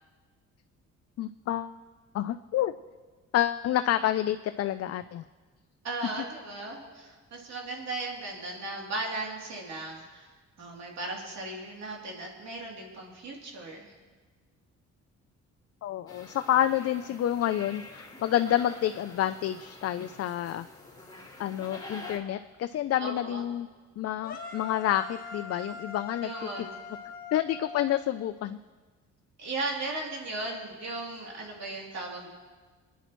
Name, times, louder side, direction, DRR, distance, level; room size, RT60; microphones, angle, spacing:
voice 1, 1.2-1.7 2.1-2.7 3.3-5.2 15.8-20.6 21.4-23.7 24.0-26.3 27.3-28.6, left 12 dB, 55° left, 10 dB, 0.5 m, -28 dB
voice 2, 5.8-10.3 10.6-13.9 23.0-23.4 26.2-26.7 29.4-32.3, right 2 dB, 60° right, -2 dB, 3.1 m, -37 dB
sound 1, 16.1-22.2, left 2 dB, 15° left, 3.5 m, -46 dB
sound 2, 24.2-28.3, left 4 dB, 30° left, 1.7 m, -42 dB
28.5 x 10.0 x 3.1 m, 1.4 s
cardioid pair, 90°, 30 cm